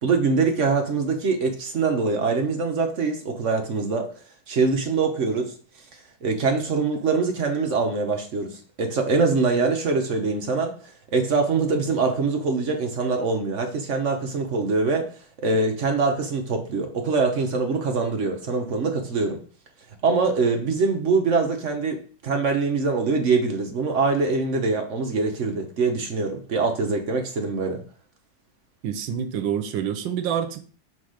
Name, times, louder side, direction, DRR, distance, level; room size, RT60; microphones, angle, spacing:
voice 1, 0.0-4.1 4.5-5.5 6.2-15.1 15.4-19.4 20.0-27.8, right 4 dB, 50° right, 1.0 m, -23 dB
voice 2, 28.8-30.6, right 9 dB, 80° right, 1.5 m, -27 dB
5.9 x 4.4 x 4.9 m
omnidirectional pair, 2.1 m